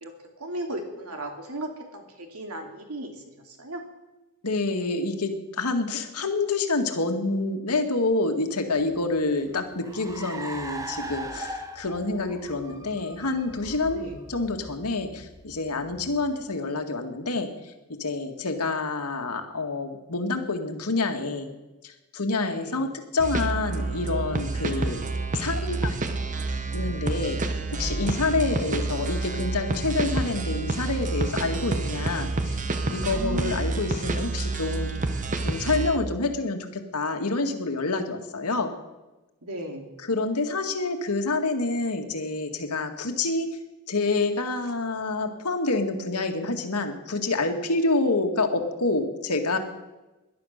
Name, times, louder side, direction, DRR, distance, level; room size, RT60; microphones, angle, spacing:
voice 1, 0.0-3.8 13.9-14.2 22.5-22.8 33.1-33.7 39.4-39.9, right 1 dB, 80° right, 4 dB, 2.7 m, -36 dB
voice 2, 4.4-14.0 14.3-21.5 21.8-26.1 26.7-27.4 27.8-32.6 32.9-34.9 35.4-38.7 40.0-43.6 43.9-49.6, left 3 dB, 85° left, 5 dB, 2.0 m, -27 dB
Car, 8.8-16.5, right 2 dB, 15° right, 1.2 m, -40 dB
sound 1, 23.2-36.0, right 2 dB, 35° right, 1.1 m, -28 dB
18.0 x 11.5 x 6.6 m, 1.1 s
head